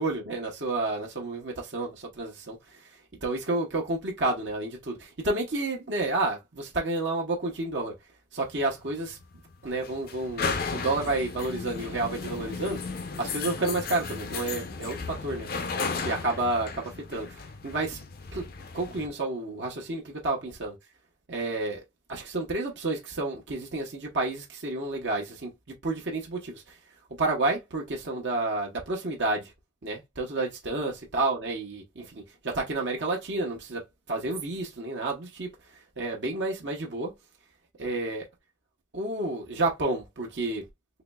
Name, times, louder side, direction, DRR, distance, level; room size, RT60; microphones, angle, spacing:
voice 1, 0.0-2.9 3.2-7.9 8.3-9.2 9.6-12.8 13.2-15.5 16.0-18.0 18.3-18.5 18.7-20.8 21.3-21.8 22.1-25.5 25.8-26.7 27.2-29.5 29.8-35.5 36.0-37.1 37.8-38.3 38.9-40.6, right 2 dB, 75° right, 0.9 m, -30 dB
sound 1, 8.4-19.1, left 4 dB, 50° left, 0.5 m, -35 dB
3.9 x 3.1 x 2.2 m
head